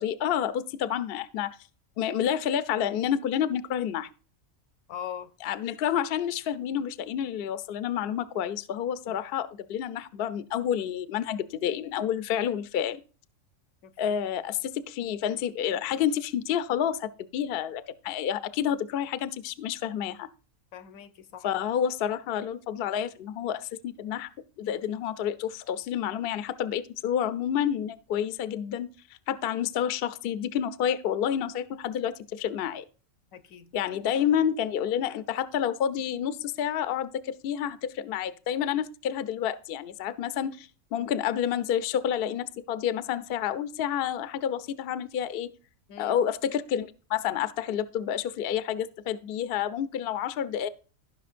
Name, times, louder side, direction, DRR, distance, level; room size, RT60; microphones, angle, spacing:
voice 1, 0.0-1.5 2.0-4.1 5.4-13.0 14.0-20.3 21.4-24.3 24.6-28.9 29.3-32.8 33.7-45.5 46.0-50.7, left 9 dB, 60° left, 0.6 m, -29 dB
voice 2, 4.9-5.3 9.1-9.2 13.8-14.1 20.7-21.5 33.3-33.7 45.9-46.1, left 9 dB, 85° left, 1.2 m, -41 dB
15.0 x 5.8 x 2.5 m
omnidirectional pair, 1.4 m